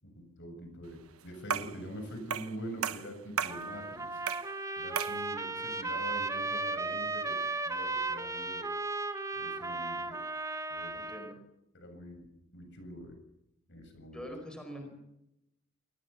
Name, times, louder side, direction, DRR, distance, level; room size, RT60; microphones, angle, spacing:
voice 1, 0.0-4.2 4.8-8.7 9.4-10.2 10.7-11.0 11.7-13.2 13.7-14.3, equal, 55° left, 6 dB, 7.8 m, -45 dB
sound 1, 1.5-1.8 2.3-2.6 2.8-3.6 4.3-4.5 5.0-5.2, right 7 dB, 85° right, 1.1 m, -34 dB
Trumpet, 3.4-11.3, right 3 dB, 15° right, 1.5 m, -35 dB
voice 2, 10.9-11.4 14.1-15.0, equal, 5° left, 4 dB, 4.7 m, -44 dB
28.0 x 19.5 x 7.3 m, 0.85 s
head